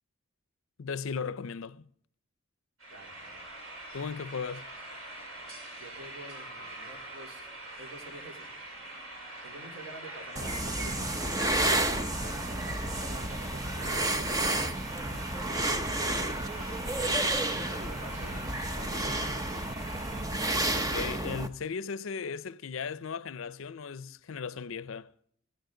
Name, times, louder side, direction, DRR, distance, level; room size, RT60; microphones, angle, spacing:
voice 1, 0.8-1.9 3.9-4.7 20.7-25.1, left 5 dB, 75° left, 0.5 m, -36 dB
sound 1, 2.8-20.2, right 2 dB, 85° right, 6.5 m, -44 dB
voice 2, 2.9-3.4 5.8-7.5 7.8-8.5 9.4-14.9 16.6-19.3, right 2 dB, 70° right, 3.7 m, -49 dB
sound 2, 10.4-21.5, right 1 dB, 15° right, 0.7 m, -31 dB
16.0 x 16.0 x 3.8 m
head